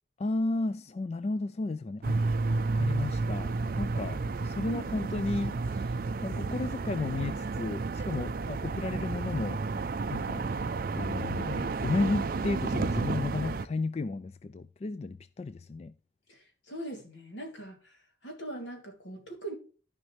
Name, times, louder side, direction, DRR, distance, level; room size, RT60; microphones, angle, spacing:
voice 1, 0.2-9.6 10.1-10.5 11.0-15.9, left 3 dB, 35° left, 0.3 m, -33 dB
sound 1, 2.0-13.7, right 3 dB, 50° right, 0.4 m, -31 dB
voice 2, 16.3-19.5, right 2 dB, 80° left, 2.8 m, -41 dB
14.0 x 5.2 x 3.2 m
head